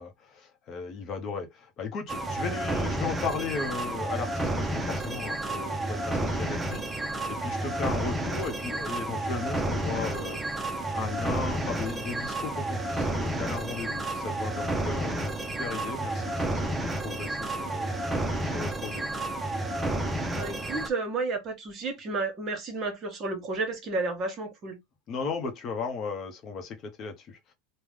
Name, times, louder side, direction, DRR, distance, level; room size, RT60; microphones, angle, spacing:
voice 1, 0.0-18.0 18.4-19.1 25.1-27.5, left 5 dB, 35° left, 0.8 m, -36 dB
sound 1, 2.1-20.9, right 1 dB, 10° right, 0.6 m, -31 dB
voice 2, 20.2-24.8, right 3 dB, 30° right, 1.3 m, -32 dB
3.6 x 2.2 x 3.2 m
supercardioid pair, 145°, 0 cm